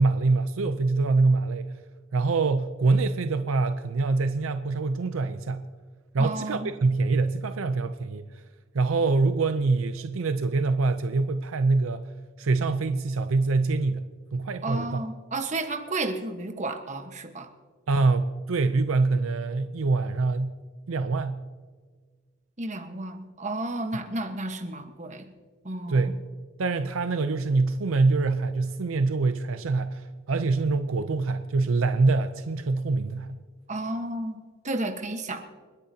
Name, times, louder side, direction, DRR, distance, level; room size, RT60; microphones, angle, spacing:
voice 1, 0.0-1.7 2.1-5.6 6.1-8.4 8.7-12.0 12.4-15.0 17.9-20.6 20.9-21.4 25.9-26.2 26.6-33.4, right 3 dB, 70° right, 9 dB, 0.5 m, -25 dB
voice 2, 6.2-6.7 14.6-17.5 22.6-25.3 25.6-26.1 33.7-34.4 34.6-35.4, right 2 dB, 35° right, 5 dB, 1.2 m, -32 dB
29.5 x 10.0 x 2.8 m, 1.5 s
head